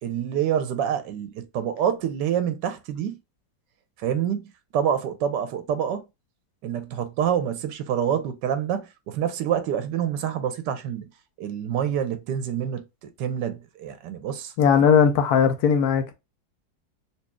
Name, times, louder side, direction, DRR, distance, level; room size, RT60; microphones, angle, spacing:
voice 1, 0.0-3.2 4.0-4.5 4.7-6.0 6.6-11.0 11.4-12.8 13.2-14.5, right 9 dB, 80° right, 1.3 m, -27 dB
voice 2, 14.6-16.1, left 7 dB, 70° left, 1.1 m, -18 dB
4.1 x 3.0 x 2.2 m
omnidirectional pair, 1.9 m